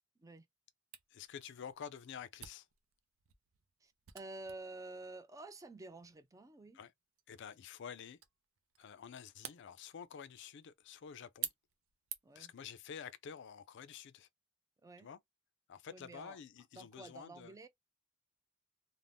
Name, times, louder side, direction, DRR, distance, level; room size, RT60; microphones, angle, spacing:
Camera, 0.9-12.5, right 10 dB, 80° right, 0.5 m, -52 dB
voice 1, 1.1-2.7 6.7-6.9 7.3-8.2 8.8-11.5 12.4-14.3 15.0-15.2 15.7-17.6, left 7 dB, 60° left, 0.4 m, -49 dB
voice 2, 3.8-6.8 12.2-12.5 14.8-15.1 15.9-16.4 16.7-17.7, right 2 dB, 15° right, 0.4 m, -50 dB
2.6 x 2.0 x 3.3 m
head